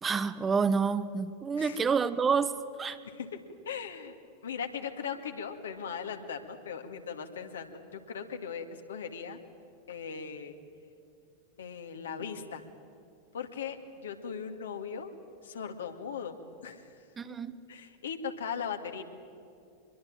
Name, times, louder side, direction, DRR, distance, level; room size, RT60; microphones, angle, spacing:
voice 1, 0.0-3.0 17.2-17.6, right 5 dB, 20° right, 0.9 m, -28 dB
voice 2, 3.0-4.1 4.4-9.4 9.9-10.6 11.6-12.6 13.3-15.1 15.4-16.4 16.6-16.9 17.7-19.0, left 6 dB, 65° left, 2.2 m, -39 dB
24.5 x 22.0 x 8.8 m
figure-of-eight pair, 90°, 0 cm